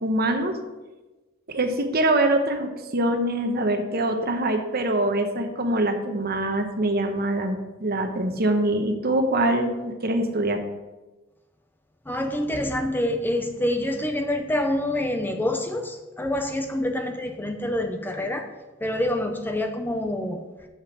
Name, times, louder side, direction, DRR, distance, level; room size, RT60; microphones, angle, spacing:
voice 1, 0.0-0.6 1.5-10.6, right 1 dB, 50° right, 6 dB, 1.0 m, -24 dB
voice 2, 12.1-18.5 18.8-20.4, left 1 dB, 10° left, 5 dB, 0.5 m, -26 dB
6.6 x 5.6 x 7.1 m, 1.1 s
head